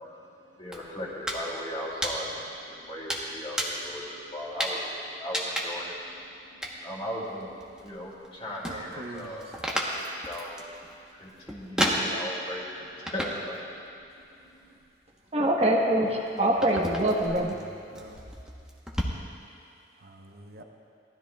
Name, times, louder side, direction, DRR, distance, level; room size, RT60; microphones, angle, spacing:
voice 1, 0.0-14.8, equal, 30° left, -5 dB, 2.4 m, -39 dB
sound 1, 0.7-1.4 1.7-2.6 3.1-3.9 4.6-4.9 5.3-5.9 6.6-6.7 7.2-8.3 8.6-12.5 13.1-13.6 13.9-14.6 15.2-19.0, equal, 5° right, 1.0 m, -32 dB
voice 2, 8.6-9.3 16.7-18.2 20.0-20.6, right 2 dB, 55° right, 3 dB, 0.8 m, -44 dB
voice 3, 15.3-17.5, right 1 dB, 35° right, 0 dB, 1.1 m, -24 dB
18.5 x 12.5 x 2.3 m, 2.5 s
head